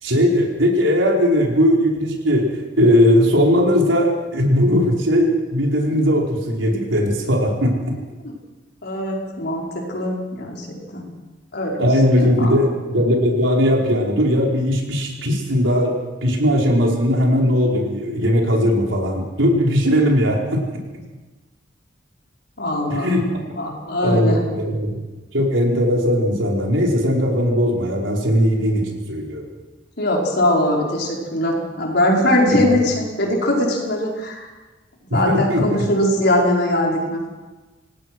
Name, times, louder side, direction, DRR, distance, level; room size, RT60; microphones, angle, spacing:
voice 1, 0.0-7.8 11.8-15.9 16.2-20.8 22.9-23.2 24.0-24.9 25.3-29.5 32.5-32.8 35.1-35.8, equal, 90° right, 0 dB, 5.0 m, -18 dB
voice 2, 8.8-11.1 11.5-11.8 12.4-12.5 22.6-23.2 23.6-24.4 30.0-34.5 35.1-37.2, left 1 dB, 60° left, -1 dB, 5.2 m, -21 dB
26.5 x 18.5 x 6.3 m, 1.2 s
head